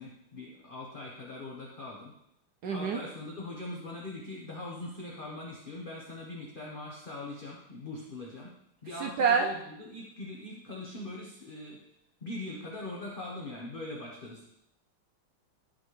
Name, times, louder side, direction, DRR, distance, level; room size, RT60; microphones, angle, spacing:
voice 1, 0.0-2.1 2.7-8.5 8.8-11.8 12.2-14.5, left 2 dB, 40° left, -3 dB, 0.8 m, -41 dB
voice 2, 2.6-3.0 8.9-9.5, right 6 dB, 80° right, 3 dB, 0.9 m, -26 dB
12.5 x 4.2 x 3.2 m, 0.78 s
omnidirectional pair, 2.3 m